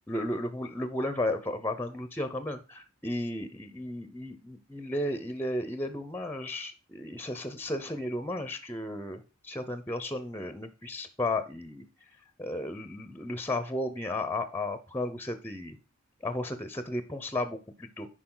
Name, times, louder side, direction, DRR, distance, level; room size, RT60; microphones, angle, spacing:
voice 1, 0.1-11.8 12.4-15.8 16.2-18.1, left 1 dB, 10° left, 10 dB, 0.7 m, -34 dB
10.5 x 4.7 x 3.8 m, 0.32 s
head